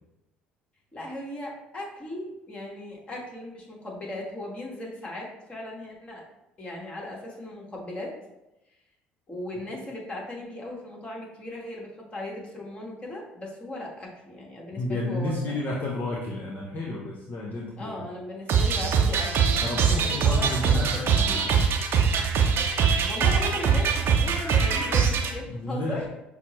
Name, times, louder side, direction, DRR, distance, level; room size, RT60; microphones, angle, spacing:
voice 1, 0.9-6.2 6.6-8.1 9.3-15.5 17.8-21.6 23.1-26.1, left 1 dB, 25° left, -3 dB, 1.4 m, -37 dB
voice 2, 14.7-18.1 19.6-21.4 25.5-26.0, left 2 dB, 45° left, -4 dB, 0.8 m, -31 dB
sound 1, 18.5-25.3, right 6 dB, 55° right, 0.6 m, -22 dB
5.9 x 2.0 x 3.0 m, 0.93 s
hypercardioid pair, 60°, 5 cm